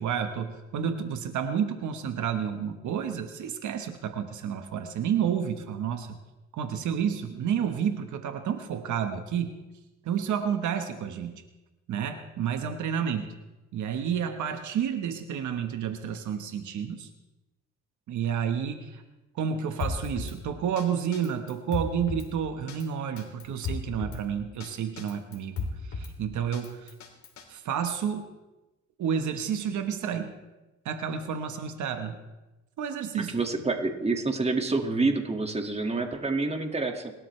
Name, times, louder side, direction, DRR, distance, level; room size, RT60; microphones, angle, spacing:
voice 1, 0.0-6.2 6.5-9.5 10.0-11.4 11.9-13.3 13.7-17.1 18.1-19.0 19.3-26.9 27.5-28.3 29.0-30.3 30.8-32.2 32.8-33.3, right 8 dB, 75° right, 7 dB, 1.3 m, -30 dB
Drum kit, 19.8-20.4 20.8-20.9 21.1-22.3 22.7-22.8 23.2-24.2 24.6-24.7 25.0-26.1 26.5-27.4, left 4 dB, 65° left, 2.9 m, -34 dB
voice 2, 33.2-37.1, right 3 dB, 20° right, 4 dB, 2.0 m, -28 dB
30.0 x 12.5 x 3.3 m, 1.1 s
cardioid pair, 90°, 30 cm